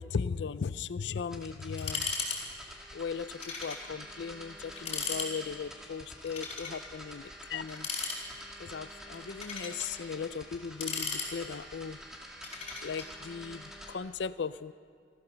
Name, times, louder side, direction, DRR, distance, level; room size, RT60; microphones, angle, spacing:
voice 1, 0.0-2.1 2.9-7.9 8.6-12.0 12.8-14.7, left 6 dB, 65° left, 15 dB, 0.4 m, -37 dB
sound 1, 1.2-13.9, equal, 5° right, 2.3 m, -48 dB
sound 2, 1.8-2.4 2.6-2.8 3.4-3.8 4.2-4.3 4.7-5.3 6.2-6.8 7.7-8.5 9.1-9.9 10.6-11.7 12.4-13.1, left 4 dB, 30° left, 5.1 m, -36 dB
29.5 x 13.0 x 6.9 m, 2.3 s
head